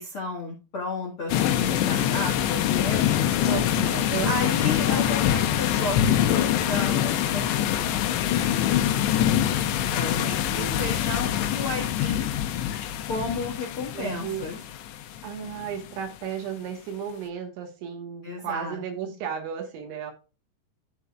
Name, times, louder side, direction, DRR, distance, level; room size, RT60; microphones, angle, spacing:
voice 1, 0.0-3.3 4.2-8.9 9.9-12.3 13.1-14.6 18.2-18.8 19.0-19.1, left 3 dB, 55° left, 0 dB, 1.4 m, -33 dB
sound 1, 1.3-15.9, left 11 dB, 75° left, 3.0 m, -24 dB
voice 2, 3.4-4.7 9.2-9.3 10.1-11.0 13.9-14.5 15.2-20.1, right 8 dB, 80° right, 4 dB, 3.8 m, -34 dB
14.0 x 5.5 x 2.3 m, 0.32 s
omnidirectional pair, 5.4 m